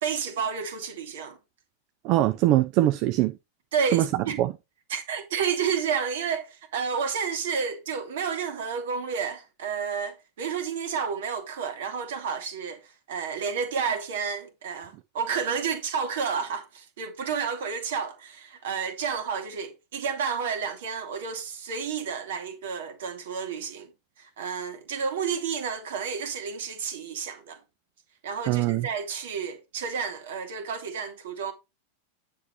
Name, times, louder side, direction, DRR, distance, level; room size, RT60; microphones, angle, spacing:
voice 1, 0.0-1.4 3.7-4.4 4.9-12.8 13.1-23.9 24.2-27.6 28.2-31.5, right 6 dB, 60° right, 2.4 m, -31 dB
voice 2, 2.0-3.4 3.9-4.5 28.5-28.9, right 15 dB, 40° right, 0.7 m, -22 dB
9.7 x 7.2 x 3.1 m
figure-of-eight pair, 90°, 0 cm